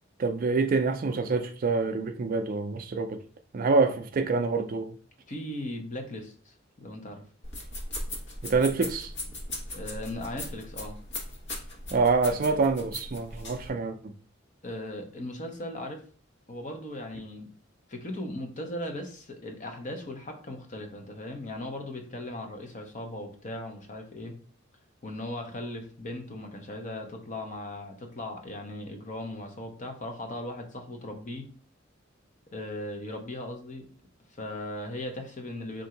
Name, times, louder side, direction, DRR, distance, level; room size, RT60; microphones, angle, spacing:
voice 1, 0.2-3.2 3.5-5.0 8.4-9.1 11.9-14.1, right 4 dB, 45° right, 0.4 m, -26 dB
voice 2, 5.3-7.2 9.7-11.0 14.6-16.0 16.5-17.5 17.9-24.3 25.0-31.5 32.5-33.9 34.3-35.9, left 1 dB, 40° left, 0.8 m, -38 dB
sound 1, 7.4-13.7, left 1 dB, 60° left, 1.2 m, -38 dB
3.8 x 2.6 x 4.4 m
head